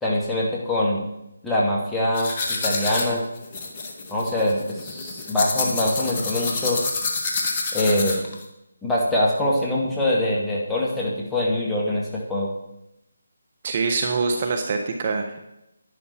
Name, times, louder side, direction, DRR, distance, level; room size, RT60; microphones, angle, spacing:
voice 1, 0.0-1.0 1.4-2.3 2.6-3.2 4.1-6.8 7.7-8.3 8.8-12.5, left 1 dB, 5° left, -6 dB, 2.1 m, -23 dB
sound 1, 2.1-8.4, left 3 dB, 30° left, 1.7 m, -28 dB
voice 2, 13.6-15.5, right 4 dB, 40° right, 4 dB, 1.2 m, -24 dB
11.0 x 10.0 x 4.5 m, 0.87 s
figure-of-eight pair, 155°, 0 cm